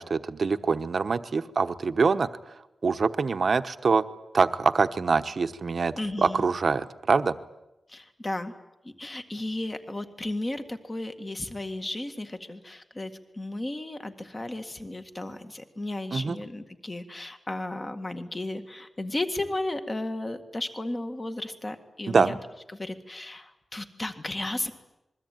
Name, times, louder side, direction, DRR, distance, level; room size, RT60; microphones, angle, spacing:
voice 1, 0.0-2.3 2.8-4.0 4.3-7.4 16.1-16.4 22.1-22.4, right 4 dB, 45° right, 10 dB, 1.1 m, -24 dB
voice 2, 5.9-6.5 7.9-8.5 8.8-22.4 22.7-24.7, left 1 dB, 20° left, 7 dB, 1.9 m, -34 dB
27.0 x 22.0 x 9.3 m, 0.93 s
wide cardioid pair, 170°, 0 cm